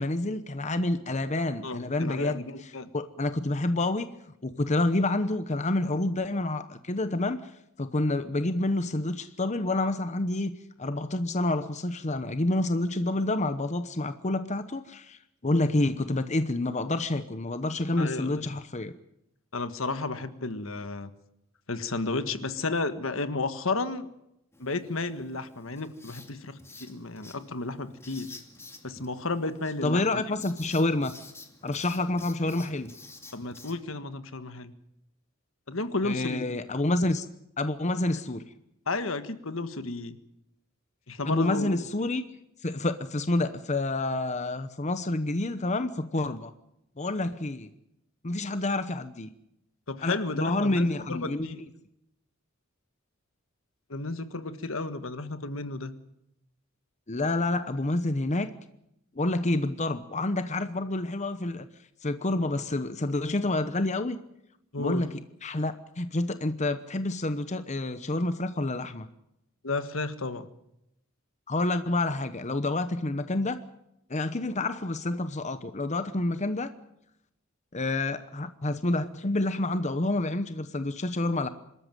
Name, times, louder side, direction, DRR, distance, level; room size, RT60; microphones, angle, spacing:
voice 1, 0.0-4.1 4.4-7.5 7.8-10.5 10.8-18.9 29.8-31.1 31.6-32.9 36.0-37.3 37.6-38.4 41.2-42.2 42.6-46.5 47.0-47.7 48.2-49.3 50.0-51.5 57.1-58.5 59.1-61.7 62.0-64.2 64.8-69.1 71.5-73.6 74.1-76.7 77.7-81.5, left 2 dB, 35° left, 11 dB, 0.9 m, -28 dB
voice 2, 1.6-2.9 18.0-18.5 19.5-21.1 21.7-24.1 24.6-28.3 28.8-30.2 33.3-34.7 35.7-36.5 38.9-40.2 41.1-41.8 49.9-51.6 53.9-55.9 64.7-65.0 69.6-70.5, left 3 dB, 70° left, 11 dB, 1.6 m, -32 dB
Writing, 24.5-33.7, left 3 dB, 15° left, 2.4 m, -50 dB
26.0 x 13.5 x 9.2 m, 0.82 s
head